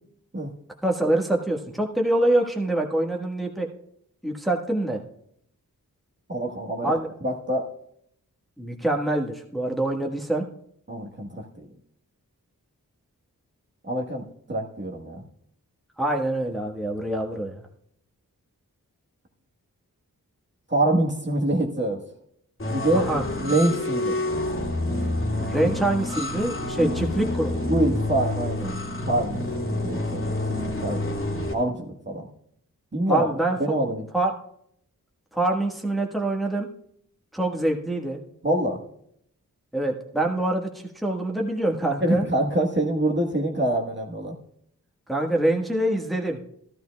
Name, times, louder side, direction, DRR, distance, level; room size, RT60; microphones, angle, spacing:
voice 1, 0.8-3.7 4.2-5.0 6.8-7.1 8.6-10.4 16.0-17.6 22.9-23.2 25.4-27.7 33.1-33.6 34.1-34.3 35.3-36.7 37.3-38.2 39.7-40.7 40.9-42.3 45.1-46.4, right 1 dB, ahead, 0 dB, 1.4 m, -25 dB
voice 2, 6.3-6.9 7.2-7.7 10.9-11.7 13.9-14.2 14.5-15.2 20.7-22.0 22.7-24.2 25.6-25.7 26.8-26.9 27.6-28.8 29.1-30.3 30.8-31.1 31.5-32.3 32.9-33.3 33.6-34.0 38.4-38.8 42.0-44.4, right 1 dB, 30° right, 0 dB, 1.3 m, -25 dB
sound 1, 22.6-31.5, left 2 dB, 35° left, 2.2 m, -28 dB
13.0 x 12.0 x 2.3 m, 0.72 s
cardioid pair, 40°, 36 cm